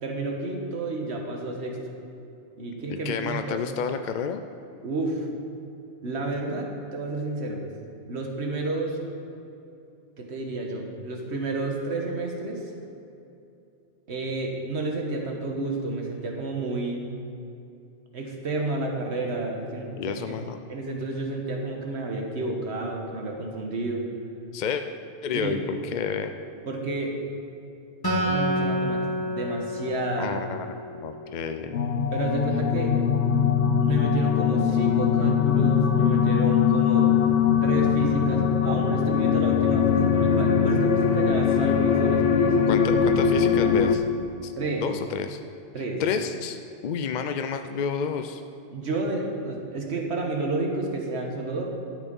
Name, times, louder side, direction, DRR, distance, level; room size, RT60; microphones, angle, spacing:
voice 1, 0.0-1.8 2.6-3.6 4.8-5.3 6.0-7.6 8.1-9.0 10.2-12.7 14.1-17.1 18.1-20.3 20.7-24.0 25.4-25.6 26.7-27.1 28.2-30.4 32.1-33.0 33.8-37.1 37.6-42.5 44.6-44.9 45.7-46.0 48.7-51.6, right 2 dB, 70° right, 1 dB, 1.6 m, -30 dB
voice 2, 2.9-4.4 20.0-20.6 24.5-24.8 25.2-26.3 30.2-31.8 42.7-44.0 44.4-44.5 44.8-45.4 46.0-48.4, left 6 dB, 55° left, 8 dB, 0.5 m, -30 dB
Acoustic guitar, 28.0-31.5, equal, 20° left, 2.1 m, -29 dB
sound 1, 31.7-44.0, left 7 dB, 80° left, 1.0 m, -21 dB
12.5 x 8.3 x 5.3 m, 2.7 s
omnidirectional pair, 1.2 m